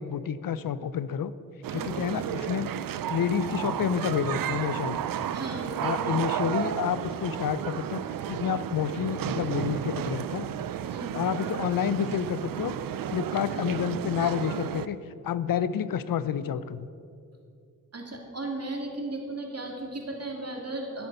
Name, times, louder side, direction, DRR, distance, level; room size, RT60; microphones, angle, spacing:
voice 1, 0.0-1.3 1.7-2.7 3.1-5.0 5.8-8.0 8.3-10.5 11.1-12.7 13.1-15.0 15.2-16.9, left 8 dB, 70° left, 15 dB, 0.6 m, -29 dB
sound 1, 1.6-14.9, right 10 dB, 70° right, 0.5 m, -32 dB
voice 2, 5.3-6.2 10.9-11.2 17.9-21.1, right 2 dB, 45° right, 0 dB, 2.5 m, -36 dB
10.5 x 10.0 x 5.4 m, 2.4 s
supercardioid pair, 40°, 35 cm